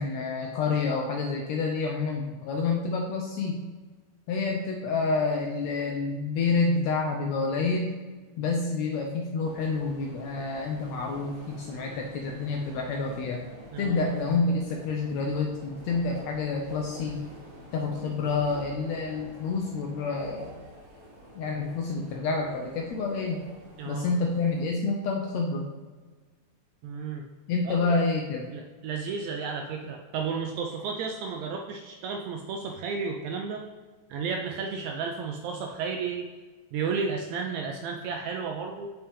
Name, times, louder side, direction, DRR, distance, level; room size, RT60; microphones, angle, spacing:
voice 1, 0.0-3.6 4.3-7.9 8.4-13.4 13.8-17.2 17.7-20.5 21.3-23.4 23.9-25.7 27.5-28.5, left 4 dB, 80° left, 1 dB, 1.6 m, -28 dB
sound 1, 9.4-24.7, equal, 55° right, 2.5 m, -47 dB
voice 2, 13.7-14.1 23.8-24.1 26.8-27.2 27.6-28.0 28.5-33.6 34.1-36.3 36.7-38.9, right 5 dB, 80° right, 2 dB, 1.7 m, -33 dB
7.0 x 4.4 x 3.4 m, 1.3 s
omnidirectional pair, 3.6 m